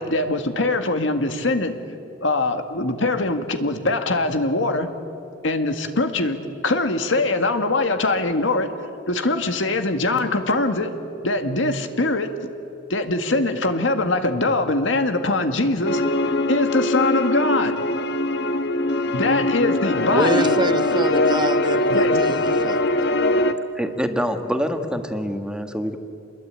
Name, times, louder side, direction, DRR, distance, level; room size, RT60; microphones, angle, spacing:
voice 1, 0.0-1.7 2.2-4.9 5.4-8.7 9.1-11.0 11.2-12.4 12.9-17.8 19.1-20.6 21.9-22.2, left 2 dB, 90° left, 7 dB, 1.9 m, -22 dB
sound 1, 15.8-23.5, left 2 dB, 65° left, 1.2 m, -21 dB
voice 2, 20.1-22.8, right 3 dB, 25° right, 13 dB, 0.7 m, -27 dB
voice 3, 23.7-26.0, equal, 5° right, 6 dB, 1.6 m, -25 dB
27.5 x 22.0 x 8.9 m, 2.8 s
head